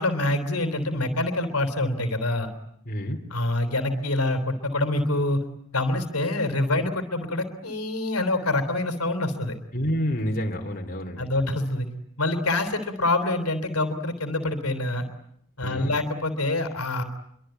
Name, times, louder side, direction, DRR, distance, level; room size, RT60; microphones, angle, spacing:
voice 1, 0.0-2.5 3.3-5.4 5.7-9.5 11.2-11.9 12.2-15.1 15.6-17.0, left 2 dB, 70° left, 8 dB, 3.6 m, -26 dB
voice 2, 2.8-3.2 9.7-11.3 15.6-15.9, equal, 40° left, 2 dB, 3.3 m, -28 dB
27.0 x 24.0 x 9.2 m, 0.74 s
head